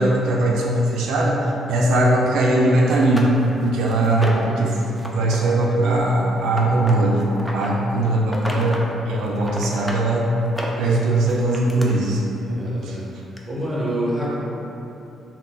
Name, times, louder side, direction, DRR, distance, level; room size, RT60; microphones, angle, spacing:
voice 1, 0.0-1.4 1.7-3.3 3.6-4.8 5.0-7.3 7.5-10.3 10.8-12.2 12.5-13.0, right 1 dB, 85° right, -3 dB, 0.3 m, -20 dB
sound 1, 2.5-2.6 3.0-4.6 4.9-5.4 5.6-7.7 8.2-8.9 9.2-10.0 10.4-11.9 12.8-12.9 13.4-13.5, equal, 5° left, 0.4 m, -33 dB
voice 2, 12.5-13.0 13.5-14.3, right 1 dB, 15° right, -6 dB, 0.8 m, -26 dB
2.5 x 2.1 x 3.7 m, 2.9 s
cardioid pair, 90°, 0 cm